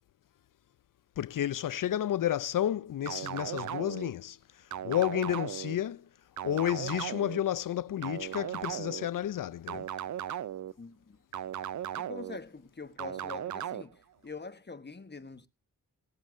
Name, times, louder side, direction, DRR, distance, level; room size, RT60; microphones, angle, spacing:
voice 1, 1.2-6.1 6.4-9.9, left 11 dB, 70° left, 0.5 m, -31 dB
sound 1, 3.1-4.1 4.7-5.8 6.4-7.4 8.0-9.1 9.7-10.7 11.3-12.4 13.0-13.8, right 10 dB, 60° right, 0.5 m, -37 dB
voice 2, 10.8-11.2 12.0-15.5, left 4 dB, 30° left, 1.1 m, -44 dB
21.0 x 7.4 x 2.6 m
cardioid pair, 65°, 33 cm